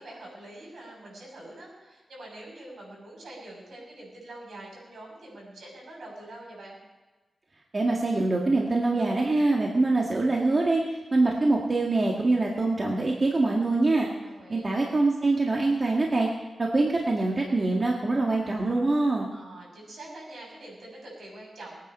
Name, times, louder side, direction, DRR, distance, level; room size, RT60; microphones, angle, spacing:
voice 1, 0.0-6.8 14.2-14.6 19.3-21.8, right 1 dB, 75° right, -3 dB, 6.8 m, -45 dB
voice 2, 7.7-10.8 11.1-14.1 14.5-16.3 16.6-19.3, right 2 dB, 35° right, -1 dB, 1.7 m, -24 dB
21.5 x 9.4 x 5.5 m, 1.2 s
wide cardioid pair, 125°, 0 cm